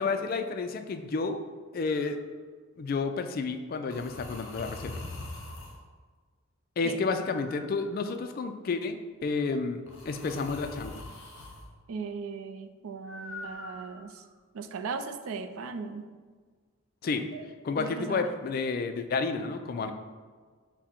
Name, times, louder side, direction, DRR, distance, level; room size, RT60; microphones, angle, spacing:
voice 1, 0.0-1.5 1.7-2.2 2.8-4.9 6.8-11.0 17.0-17.3 17.6-19.9, left 4 dB, 45° left, 7 dB, 0.3 m, -31 dB
sound 1, 1.9-2.2 3.9-5.8 7.2-8.3 9.9-11.6 13.1-14.3, left 2 dB, 60° left, 0.8 m, -43 dB
voice 2, 11.9-14.2 14.5-16.1 17.3-17.4 17.8-18.3, right 4 dB, 80° right, 8 dB, 0.4 m, -37 dB
6.0 x 2.1 x 4.3 m, 1.5 s
head